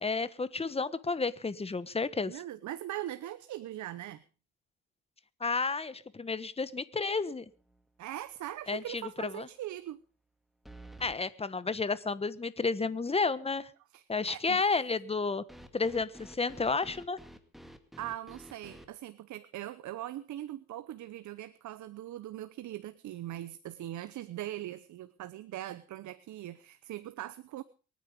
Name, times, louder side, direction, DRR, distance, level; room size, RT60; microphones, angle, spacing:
voice 1, 0.0-2.4 5.4-7.4 8.7-9.5 11.0-13.7 14.1-15.4 15.7-17.2, left 4 dB, 20° left, 15 dB, 1.2 m, -31 dB
voice 2, 2.3-4.2 8.0-10.0 13.9-14.6 18.0-27.6, right 13 dB, 75° right, 14 dB, 0.9 m, -41 dB
sound 1, 7.6-8.0 8.4-8.5 10.7-11.2 15.5-18.9, right 1 dB, ahead, 2.0 m, -51 dB
24.0 x 9.4 x 5.1 m, 0.37 s
cardioid pair, 90°, 30 cm